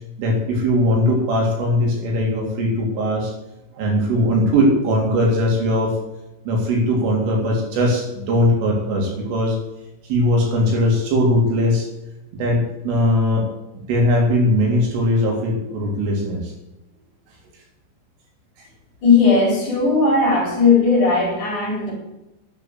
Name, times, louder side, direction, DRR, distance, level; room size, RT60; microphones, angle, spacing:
voice 1, 0.2-3.3 3.7-6.0 6.5-9.6 10.0-11.9 12.3-13.5 13.9-16.5 18.6-18.7, left 1 dB, 75° right, -1 dB, 6.1 m, -19 dB
voice 2, 19.0-21.9, left 4 dB, 40° left, -1 dB, 5.3 m, -17 dB
11.5 x 9.6 x 8.1 m, 0.93 s
omnidirectional pair, 5.8 m